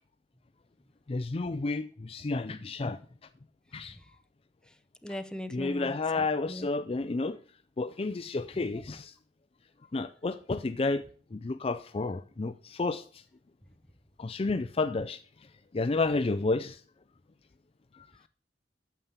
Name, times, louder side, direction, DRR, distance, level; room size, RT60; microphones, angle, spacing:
voice 1, 1.1-3.0 3.7-4.0 5.5-7.4 7.8-9.1 9.9-11.0 11.3-13.0 14.2-15.2 15.7-16.8, left 3 dB, 35° left, 0.5 m, -31 dB
voice 2, 5.0-6.7, left 1 dB, 5° left, 0.8 m, -39 dB
9.1 x 7.2 x 8.1 m
head